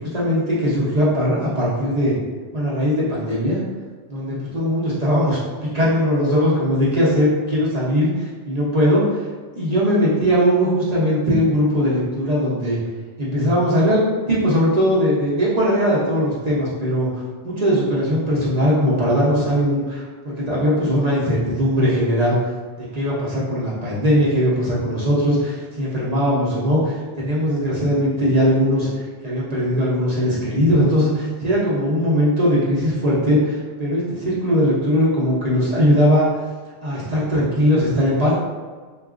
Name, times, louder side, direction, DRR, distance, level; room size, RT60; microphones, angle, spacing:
voice 1, 0.0-2.2 2.5-3.6 4.1-9.2 9.5-12.8 13.2-14.0 14.3-22.4 22.8-28.9 29.2-36.3 36.8-38.3, equal, 40° right, -7 dB, 0.8 m, -19 dB
4.0 x 2.4 x 2.4 m, 1.4 s
omnidirectional pair, 1.2 m